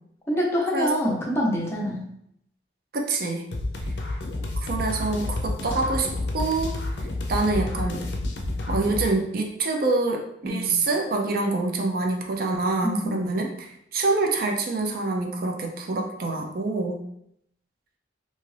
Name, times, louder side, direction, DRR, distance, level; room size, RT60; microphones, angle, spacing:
voice 1, 0.3-2.0 10.4-10.8 12.8-13.4, equal, 15° left, -3 dB, 0.6 m, -26 dB
voice 2, 2.9-3.5 4.6-6.1 6.3-6.8 7.3-8.1 8.7-17.1, right 3 dB, 55° right, 2 dB, 0.4 m, -26 dB
sound 1, 3.5-9.1, left 2 dB, 65° left, 0.5 m, -29 dB
2.6 x 2.4 x 3.2 m, 0.74 s
head